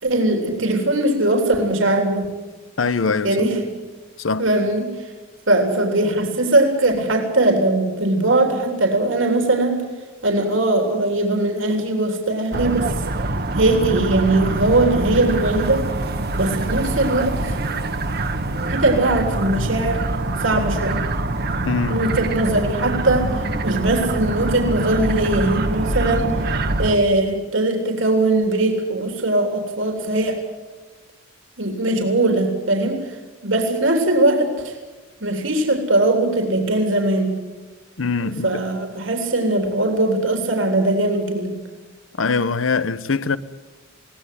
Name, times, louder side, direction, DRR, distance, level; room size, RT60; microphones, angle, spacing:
voice 1, 0.0-2.3 3.2-3.7 4.4-5.1 5.5-9.8 10.2-12.9 13.6-15.9 16.4-17.6 18.7-20.0 20.4-21.1 21.9-30.4 31.6-33.1 33.4-34.8 35.2-37.3 38.2-41.6, right 2 dB, 75° right, 3.6 m, -20 dB
voice 2, 2.8-3.5 4.2-4.5 21.6-22.0 38.0-38.6 42.2-43.4, left 4 dB, 85° left, 0.9 m, -22 dB
sound 1, 12.5-27.0, right 2 dB, 55° right, 1.3 m, -24 dB
22.0 x 17.5 x 9.5 m
head